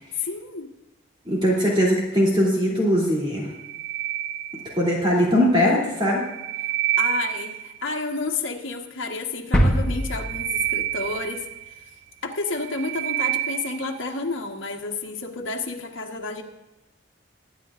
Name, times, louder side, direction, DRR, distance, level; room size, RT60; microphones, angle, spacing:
voice 1, 0.2-0.7 7.0-11.4 12.2-16.4, left 3 dB, 70° left, 0 dB, 1.4 m, -30 dB
voice 2, 1.2-3.5 4.8-6.2, equal, 25° right, -4 dB, 2.9 m, -20 dB
sound 1, 3.4-5.1 6.0-7.9 9.8-11.9 12.4-14.0, right 13 dB, 55° right, 1.1 m, -28 dB
sound 2, 9.5-11.4 11.7-11.8, equal, 5° left, 1.4 m, -24 dB
23.0 x 9.8 x 2.5 m, 1.0 s
head